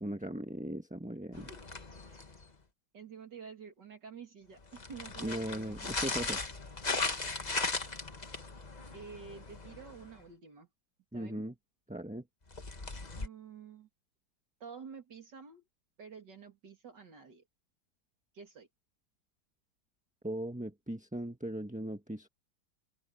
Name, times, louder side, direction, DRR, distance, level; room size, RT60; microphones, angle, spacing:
voice 1, 0.0-1.5 5.2-6.4 11.1-11.5 11.9-12.2 20.2-22.3, right 1 dB, 5° right, 1.1 m, -38 dB
sound 1, 1.3-2.5 4.6-10.2 12.5-13.3, left 3 dB, 25° left, 1.3 m, -38 dB
voice 2, 1.4-1.7 2.1-2.2 2.9-5.9 8.9-10.7 11.1-11.5 13.2-13.9 14.6-15.6 16.0-17.4 18.3-18.7, right 6 dB, 60° right, 3.0 m, -49 dB
omnidirectional pair, 2.1 m